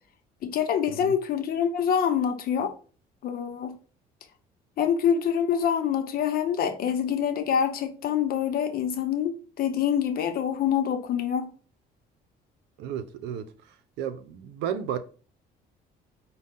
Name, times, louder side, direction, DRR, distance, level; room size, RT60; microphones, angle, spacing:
voice 1, 0.4-2.7 3.2-3.7 4.8-11.5, left 8 dB, 60° left, 0.8 m, -26 dB
voice 2, 12.8-13.5 14.0-15.0, right 9 dB, 90° right, 0.6 m, -33 dB
5.3 x 2.3 x 3.6 m
cardioid pair, 110°, 17 cm